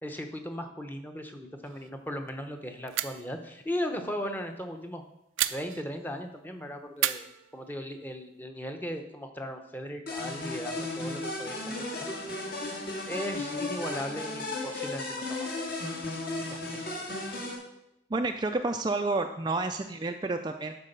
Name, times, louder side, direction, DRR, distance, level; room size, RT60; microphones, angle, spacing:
voice 1, 0.0-5.0 5.5-7.3 7.5-12.1 13.1-16.2 16.5-17.1, equal, 10° left, 5 dB, 0.8 m, -37 dB
sound 1, 1.6-2.0 2.3-2.4 2.9-3.3 5.4-6.2 7.0-8.1, right 13 dB, 90° right, 0.5 m, -34 dB
sound 2, 10.1-17.6, left 2 dB, 50° left, 1.8 m, -35 dB
voice 2, 18.1-20.8, right 3 dB, 20° right, 5 dB, 0.4 m, -30 dB
11.5 x 4.7 x 6.6 m, 0.84 s
head